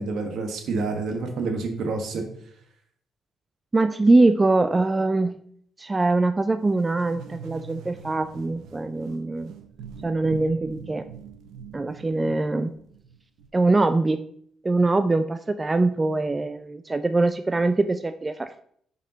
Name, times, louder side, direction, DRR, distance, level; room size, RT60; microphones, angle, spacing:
voice 1, 0.0-2.2, right 3 dB, 75° right, 4 dB, 1.3 m, -28 dB
voice 2, 3.7-5.4 5.8-9.5 10.0-11.1 11.7-12.7 13.5-14.2 14.6-18.6, right 2 dB, 20° right, 11 dB, 0.3 m, -22 dB
sound 1, 6.7-13.5, right 6 dB, 90° right, 0.7 m, -44 dB
5.4 x 5.2 x 3.9 m, 0.63 s
cardioid pair, 90°, 0 cm